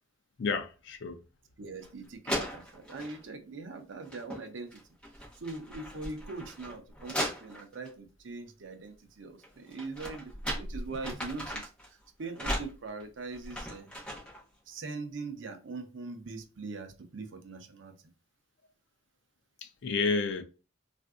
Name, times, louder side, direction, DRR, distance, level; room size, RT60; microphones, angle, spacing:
voice 1, 0.4-1.2 19.6-20.4, left 4 dB, 60° left, 0.4 m, -30 dB
voice 2, 1.6-4.8 5.4-13.9 14.7-18.0, right 3 dB, 65° right, 0.6 m, -42 dB
sound 1, 1.8-1.9 2.3-3.2 4.0-4.4 4.7-7.9 9.4-11.9 12.3-14.4, equal, 5° left, 0.9 m, -37 dB
3.5 x 2.5 x 2.3 m
head